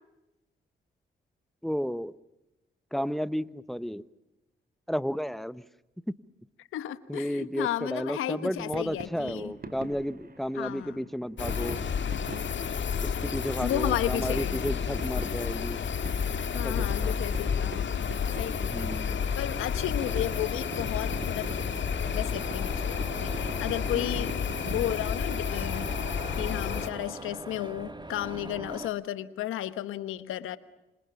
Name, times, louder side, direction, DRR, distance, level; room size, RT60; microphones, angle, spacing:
voice 1, 1.6-2.1 2.9-4.0 4.9-5.6 7.1-11.8 13.0-15.8 16.6-17.2 18.6-19.3 23.9-24.1, equal, ahead, 1.2 m, -33 dB
voice 2, 6.7-9.5 10.5-11.0 13.6-14.6 16.5-18.1 18.4-18.9 19.4-21.5 22.1-26.0 26.4-30.6, left 12 dB, 90° left, 1.2 m, -33 dB
sound 1, 8.6-25.9, right 3 dB, 45° right, 2.9 m, -44 dB
sound 2, 11.4-26.9, left 7 dB, 65° left, 2.1 m, -31 dB
sound 3, 20.0-28.9, right 2 dB, 20° right, 2.5 m, -42 dB
27.0 x 27.0 x 7.2 m
supercardioid pair, 45°, 21 cm